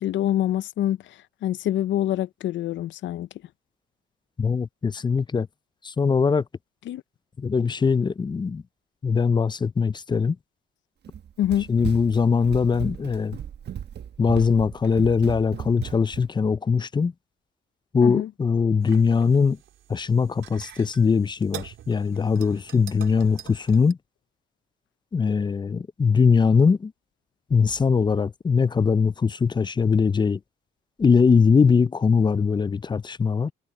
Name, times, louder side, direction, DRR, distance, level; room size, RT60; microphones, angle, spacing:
voice 1, 0.0-3.3 6.9-7.0 11.4-11.7 18.0-18.3, left 12 dB, 70° left, 0.6 m, -26 dB
voice 2, 4.4-5.5 5.8-6.4 7.4-8.6 9.0-10.4 11.7-13.4 14.2-17.1 17.9-19.6 19.9-24.0 25.1-26.9 27.5-30.4 31.0-33.5, left 5 dB, 20° left, 0.4 m, -21 dB
Run, 11.0-16.3, right 9 dB, 55° right, 1.2 m, -36 dB
sound 1, 18.8-23.9, right 11 dB, 80° right, 4.2 m, -45 dB
cardioid pair, 90°, 20 cm